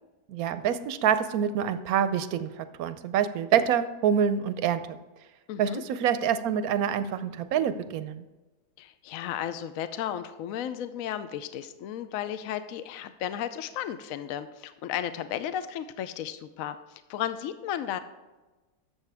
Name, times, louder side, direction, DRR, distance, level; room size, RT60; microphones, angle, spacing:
voice 1, 0.3-4.8 5.6-8.2, right 8 dB, 70° right, 12 dB, 1.0 m, -26 dB
voice 2, 5.5-5.8 8.8-18.0, left 10 dB, 70° left, 11 dB, 0.9 m, -34 dB
11.5 x 7.4 x 3.4 m, 1.2 s
omnidirectional pair, 1.7 m